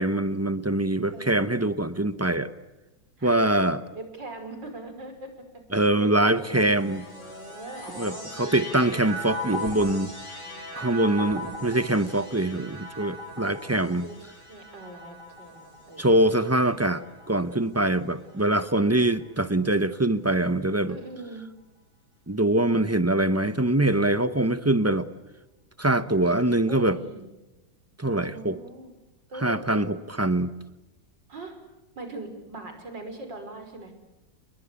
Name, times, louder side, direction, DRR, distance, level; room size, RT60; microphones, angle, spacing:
voice 1, 0.0-2.5 3.2-3.8 5.7-7.0 8.0-10.1 10.8-14.1 16.0-21.0 22.3-25.1 25.8-27.0 28.0-28.6 29.4-30.5, right 1 dB, 15° right, 0.6 m, -23 dB
voice 2, 1.1-1.6 3.2-3.4 3.9-6.7 7.1-9.1 10.4-11.5 14.0-16.5 18.2-19.2 20.9-21.4 22.7-23.4 26.0-27.3 28.1-28.9 29.3-30.0 31.3-31.6 32.0-33.9, right 2 dB, 70° right, 6.2 m, -42 dB
sound 1, 6.4-17.9 18.7-19.4, left 1 dB, 25° left, 8.2 m, -39 dB
30.0 x 21.5 x 8.3 m
omnidirectional pair, 2.0 m